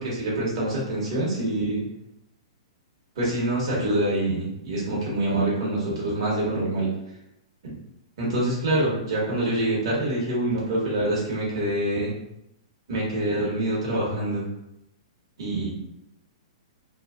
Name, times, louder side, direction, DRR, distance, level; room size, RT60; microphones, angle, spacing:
voice 1, 0.0-1.8 3.2-6.9 8.2-12.1 12.9-14.5 15.4-15.7, right 1 dB, 65° right, -5 dB, 1.3 m, -25 dB
3.1 x 2.4 x 2.4 m, 0.84 s
hypercardioid pair, 125°, 3 cm